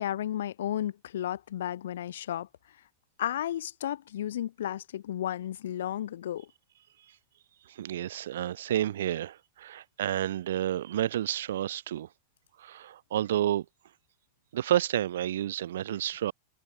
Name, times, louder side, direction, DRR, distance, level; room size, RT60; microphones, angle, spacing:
voice 1, 0.0-2.5 3.2-6.5, left 11 dB, 60° left, 1.9 m, -33 dB
voice 2, 7.7-12.1 12.6-13.6 14.5-16.3, right 12 dB, 60° right, 1.2 m, -30 dB
figure-of-eight pair, 90°, 0 cm